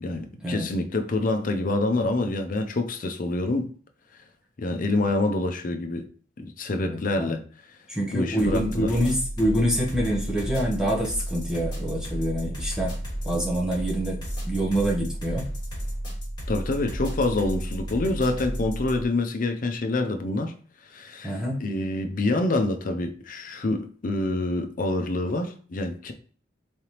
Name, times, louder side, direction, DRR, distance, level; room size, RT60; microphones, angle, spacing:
voice 1, 0.0-3.7 4.6-6.0 6.4-7.4 8.1-8.9 16.5-20.5 20.9-26.1, left 2 dB, 50° left, 0.5 m, -26 dB
voice 2, 6.8-7.3 7.9-13.0 13.2-14.2 14.4-15.5 21.2-21.6, equal, 5° right, 0.9 m, -26 dB
sound 1, 8.4-19.0, equal, 25° left, 1.7 m, -32 dB
3.9 x 3.2 x 2.9 m
head